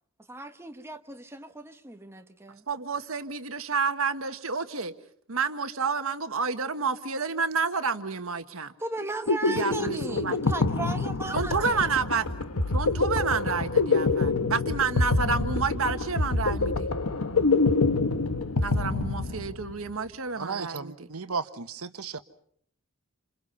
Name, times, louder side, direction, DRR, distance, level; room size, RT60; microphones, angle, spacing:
voice 1, 0.3-2.6 8.8-11.9, right 2 dB, 10° right, 6 dB, 1.3 m, -36 dB
voice 2, 2.7-4.9 5.3-8.7 9.5-10.4 11.3-12.3 12.7-16.9 18.6-21.1, right 5 dB, 65° right, 9 dB, 1.5 m, -29 dB
sound 1, 9.0-19.8, left 3 dB, 85° left, 1.3 m, -26 dB
voice 3, 20.4-22.2, right 5 dB, 80° right, 10 dB, 1.3 m, -34 dB
28.5 x 27.5 x 5.6 m, 0.62 s
head